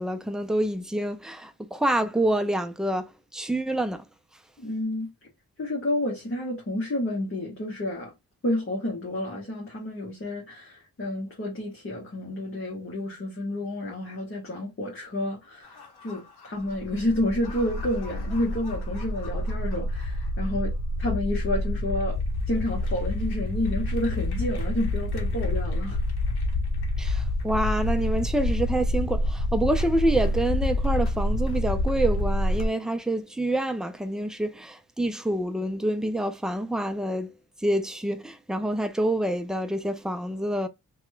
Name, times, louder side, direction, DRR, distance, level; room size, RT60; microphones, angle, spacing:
voice 1, 0.0-4.0 27.0-37.3 37.6-40.7, right 1 dB, ahead, 0.4 m, -27 dB
voice 2, 4.6-5.1 5.6-8.1 8.4-22.2 22.5-26.0, left 1 dB, 35° left, 1.0 m, -30 dB
sound 1, 15.7-32.7, left 1 dB, 75° left, 0.8 m, -28 dB
2.9 x 2.3 x 3.1 m
cardioid pair, 60°, 39 cm